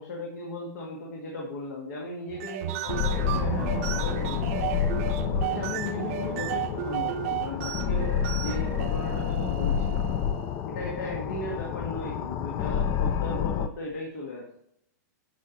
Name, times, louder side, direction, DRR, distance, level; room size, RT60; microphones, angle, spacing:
voice 1, 0.0-4.6 5.3-10.0 10.7-14.5, left 1 dB, 65° left, -1 dB, 2.0 m, -37 dB
sound 1, 2.3-10.6, right 11 dB, 50° right, 0.7 m, -34 dB
sound 2, 2.9-13.7, left 8 dB, 25° left, 0.5 m, -29 dB
8.8 x 5.8 x 4.2 m, 0.74 s
hypercardioid pair, 145°, 10 cm